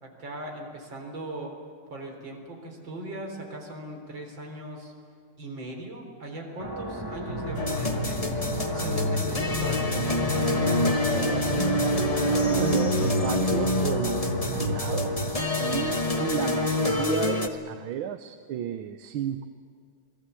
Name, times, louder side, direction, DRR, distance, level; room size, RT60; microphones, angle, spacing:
voice 1, 0.0-1.5 1.9-4.9 5.4-11.8, right 1 dB, 70° right, 2 dB, 4.8 m, -39 dB
sound 1, 6.6-17.1, right 1 dB, 10° right, 1.5 m, -36 dB
sound 2, 7.3-15.3, left 1 dB, 80° left, 6.4 m, -32 dB
sound 3, 7.6-17.5, left 1 dB, 20° left, 1.1 m, -27 dB
voice 2, 12.5-19.5, right 10 dB, 85° right, 9 dB, 1.7 m, -33 dB
28.5 x 20.0 x 8.3 m, 2.2 s
omnidirectional pair, 2.2 m